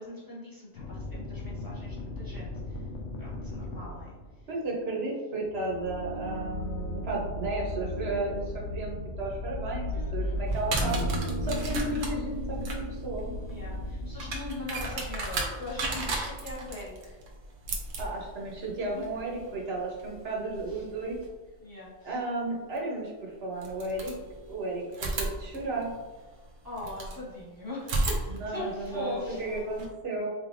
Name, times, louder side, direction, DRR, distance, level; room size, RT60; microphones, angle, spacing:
voice 1, 0.0-2.8 3.2-4.1 7.0-7.3 9.9-10.5 13.5-17.2 18.9-19.1 20.7-20.8 21.6-22.2 26.6-29.7, left 2 dB, 15° left, -7 dB, 1.1 m, -41 dB
sound 1, 0.8-4.4 5.4-15.1, left 1 dB, 80° left, 0.9 m, -36 dB
voice 2, 4.5-13.3 18.0-21.2 22.0-24.2 24.5-26.0 28.3-30.3, right 2 dB, 55° right, -3 dB, 1.0 m, -34 dB
sound 2, 10.5-21.3 22.8-22.9 23.6-24.6 24.9-27.2 27.8-29.9, right 2 dB, 80° right, 1.1 m, -35 dB
sound 3, 10.8-14.9, right 1 dB, 5° right, 1.1 m, -38 dB
4.1 x 3.3 x 2.6 m, 1.3 s
omnidirectional pair, 1.3 m